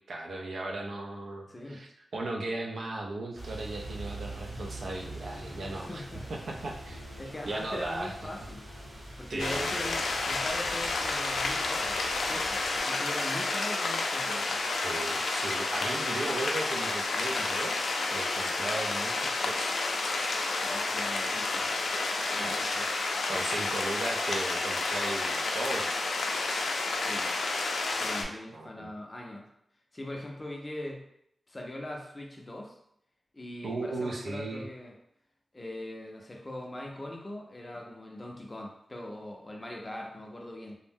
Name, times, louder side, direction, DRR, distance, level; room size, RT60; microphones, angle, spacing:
voice 1, 0.1-6.0 6.3-7.0 7.4-8.1 9.3-9.9 14.8-17.7 18.1-19.8 22.4-22.8 23.3-26.7 28.2-28.9 33.6-34.7, right 2 dB, 70° right, 0 dB, 0.4 m, -37 dB
voice 2, 1.5-1.8 5.7-6.3 7.2-8.7 9.2-12.0 12.2-14.6 15.7-16.3 20.6-21.8 22.3-22.9 23.6-23.7 27.0-27.4 27.9-29.5 29.9-31.0 31.5-32.8 33.3-34.9 35.5-40.8, left 1 dB, 25° left, 1 dB, 0.4 m, -41 dB
sound 1, 3.4-12.8, right 1 dB, 25° right, 0.7 m, -44 dB
Bowed string instrument, 4.6-9.1, left 1 dB, 90° right, 0.8 m, -51 dB
sound 2, 9.4-28.2, left 3 dB, 90° left, 0.3 m, -30 dB
2.6 x 2.0 x 3.4 m, 0.76 s
wide cardioid pair, 125°, 0 cm